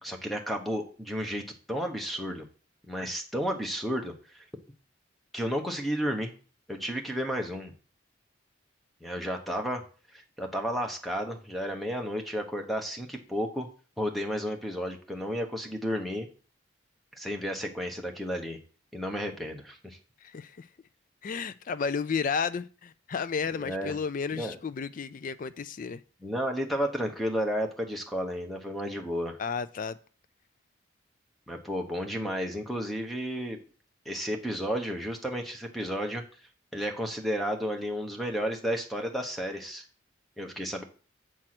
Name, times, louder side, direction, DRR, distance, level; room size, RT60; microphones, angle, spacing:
voice 1, 0.0-1.4 1.7-2.5 2.8-4.4 5.3-6.3 6.7-7.7 9.0-9.8 10.1-13.7 14.0-16.3 17.1-18.6 18.9-20.0 23.5-23.9 24.3-24.6 26.2-29.4 31.5-33.6 34.0-39.9 40.4-40.8, equal, ahead, 3 dB, 1.0 m, -32 dB
voice 2, 20.2-20.7 21.2-26.0 29.4-30.0, left 5 dB, 40° left, 15 dB, 0.4 m, -32 dB
7.7 x 4.6 x 5.9 m, 0.39 s
head